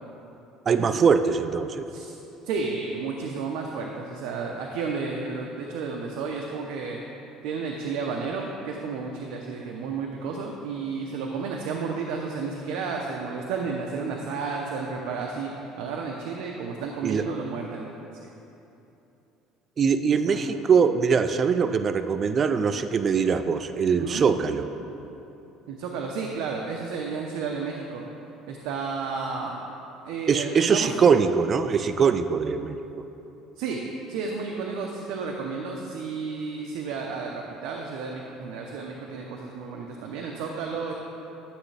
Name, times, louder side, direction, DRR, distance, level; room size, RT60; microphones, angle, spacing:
voice 1, 0.7-1.9 17.0-17.3 19.8-24.7 30.3-32.8, right 6 dB, 30° right, 9 dB, 0.3 m, -22 dB
voice 2, 2.4-7.0 7.4-15.5 15.8-17.9 18.2-18.3 20.3-20.4 23.9-24.2 25.7-28.0 28.5-29.7 30.0-30.9 33.6-33.8 34.1-40.9, right 5 dB, 80° right, 0 dB, 0.7 m, -32 dB
11.5 x 7.1 x 3.3 m, 2.9 s
cardioid pair, 140°, 0 cm